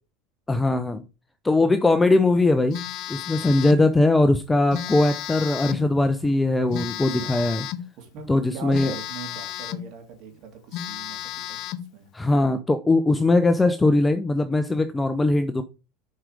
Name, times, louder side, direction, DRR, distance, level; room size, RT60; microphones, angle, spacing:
voice 1, 0.5-1.0 1.4-2.8 3.1-7.7 8.3-9.0 12.1-15.6, left 2 dB, 10° left, 0.5 m, -20 dB
Telephone, 2.7-3.9 4.7-5.9 6.7-7.9 8.7-9.9 10.3-10.4 10.7-11.9, left 12 dB, 50° left, 0.6 m, -33 dB
voice 2, 7.1-7.4 8.0-11.6 11.9-12.1, right 6 dB, 55° right, 2.9 m, -41 dB
7.6 x 4.7 x 4.9 m
supercardioid pair, 110°, 0 cm